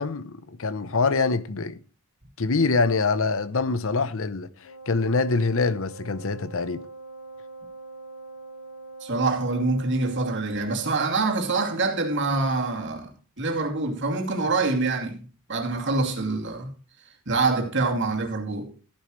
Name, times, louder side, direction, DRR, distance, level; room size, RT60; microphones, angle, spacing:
voice 1, 0.0-1.8 2.4-4.5 4.9-6.8, left 4 dB, 65° left, 0.8 m, -24 dB
Wind instrument woodwind instrument, 4.6-12.8, right 3 dB, 85° left, 5.0 m, -43 dB
voice 2, 9.0-13.1 13.4-15.2 15.5-16.7 17.3-18.7, right 3 dB, 55° right, 2.6 m, -25 dB
14.5 x 10.0 x 3.2 m
head